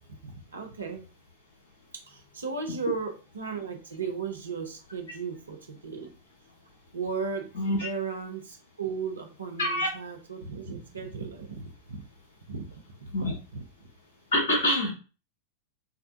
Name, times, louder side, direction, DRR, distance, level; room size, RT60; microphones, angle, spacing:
voice 1, 0.1-1.0 1.9-6.1 6.9-12.0 12.5-13.6, right 5 dB, 75° right, 3 dB, 0.9 m, -36 dB
voice 2, 7.5-7.9 9.6-9.9 13.1-13.3 14.3-14.9, left 1 dB, 60° left, 1 dB, 1.5 m, -25 dB
6.1 x 2.4 x 2.8 m, 0.34 s
figure-of-eight pair, 90°, 0 cm